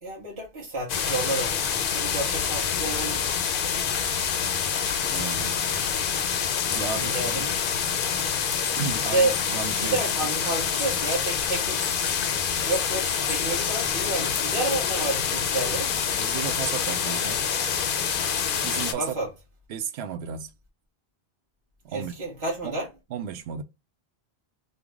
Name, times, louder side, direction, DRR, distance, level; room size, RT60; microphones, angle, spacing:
voice 1, 0.0-3.2 7.0-7.5 9.1-9.3 9.7-11.9 12.7-15.9 19.0-19.3 21.9-22.9, right 2 dB, 30° right, 1.3 m, -30 dB
sound 1, 0.9-18.9, left 7 dB, 60° left, 0.7 m, -26 dB
voice 2, 5.1-5.6 6.7-7.5 8.8-10.0 16.1-17.4 18.6-19.2 19.7-20.5 21.8-22.1 22.6-22.7 23.1-23.6, right 7 dB, 85° right, 0.8 m, -34 dB
3.4 x 2.2 x 3.4 m
omnidirectional pair, 1.1 m